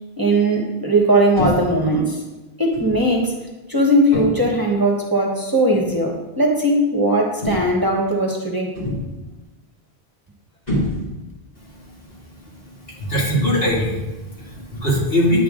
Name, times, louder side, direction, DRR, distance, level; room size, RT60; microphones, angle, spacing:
voice 1, 0.2-2.2 2.6-3.3 3.7-8.8, right 1 dB, 20° right, -1 dB, 1.2 m, -19 dB
sound 1, 1.4-1.8 2.7-3.0 4.1-4.6 5.7-5.9 7.4-7.9 8.7-9.3 10.7-11.3, equal, 40° left, 3.0 m, -26 dB
voice 2, 12.9-15.4, left 1 dB, 65° left, -4 dB, 2.7 m, -21 dB
9.7 x 8.1 x 3.8 m, 1.1 s
omnidirectional pair, 1.0 m